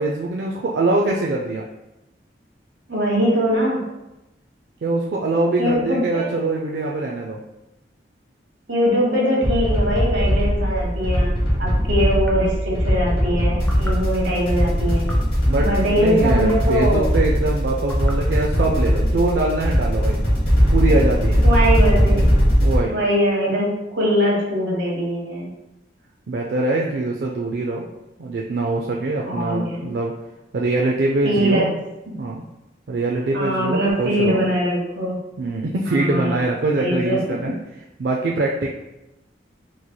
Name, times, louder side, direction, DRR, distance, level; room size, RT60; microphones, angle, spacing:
voice 1, 0.0-1.6 4.8-7.4 15.5-20.3 20.7-21.4 22.6-22.9 26.3-27.9 28.2-30.1 30.5-31.7 32.2-32.4 32.9-34.4 35.4-37.5 38.0-38.7, right 2 dB, 60° right, -2 dB, 0.3 m, -23 dB
voice 2, 2.9-3.8 5.6-6.3 8.7-11.3 11.6-15.1 15.6-17.1 20.9-21.0 21.4-22.2 22.9-23.7 23.9-25.5 29.2-29.8 31.2-31.6 33.3-35.1 35.9-36.4 36.8-37.5, equal, 80° right, -4 dB, 1.2 m, -21 dB
sound 1, 9.4-22.8, equal, 50° left, 0.9 m, -19 dB
sound 2, 12.2-12.6 13.6-14.1 15.0-15.4 16.4-16.8 17.8-18.3, equal, 5° left, 0.4 m, -38 dB
4.1 x 3.1 x 2.2 m, 0.96 s
head